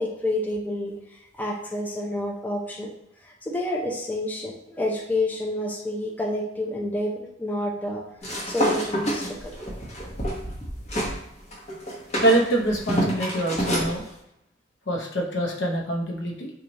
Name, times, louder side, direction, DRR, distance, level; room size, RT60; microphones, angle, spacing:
voice 1, 0.0-2.9 3.2-8.0 8.5-9.5, left 1 dB, 10° left, -2 dB, 0.4 m, -29 dB
sound 1, 8.2-11.2 11.5-13.9, equal, 35° left, 0.9 m, -28 dB
voice 2, 12.2-14.1 14.9-16.5, right 1 dB, 70° left, 0 dB, 0.7 m, -24 dB
3.1 x 2.3 x 3.9 m, 0.85 s
head